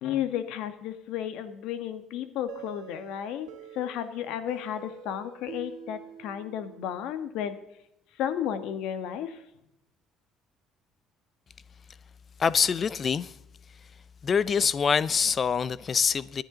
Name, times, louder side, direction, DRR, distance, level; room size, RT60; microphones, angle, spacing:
voice 1, 0.0-3.5 3.7-7.6 8.2-9.4, left 10 dB, 75° left, 1.5 m, -33 dB
sound 1, 2.5-7.2, right 9 dB, 85° right, 2.0 m, -46 dB
voice 2, 12.4-13.4 14.2-16.4, left 6 dB, 30° left, 0.5 m, -25 dB
24.5 x 10.0 x 3.9 m
cardioid pair, 155°, 0 cm